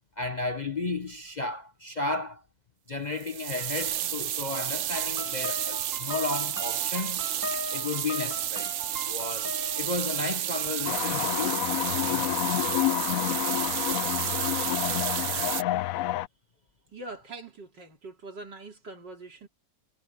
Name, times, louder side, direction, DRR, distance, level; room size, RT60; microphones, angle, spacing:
voice 1, 0.2-2.4 2.9-7.3 7.7-8.7 9.1-11.6 12.0-12.4, left 3 dB, 35° left, 0.7 m, -33 dB
sound 1, 3.2-15.6, right 11 dB, 65° right, 0.7 m, -31 dB
sound 2, 4.9-10.0, left 2 dB, 10° right, 2.0 m, -39 dB
sound 3, 10.8-16.3, left 14 dB, 70° left, 0.8 m, -29 dB
voice 2, 16.9-19.5, right 3 dB, 85° right, 4.3 m, -43 dB
omnidirectional pair, 1.8 m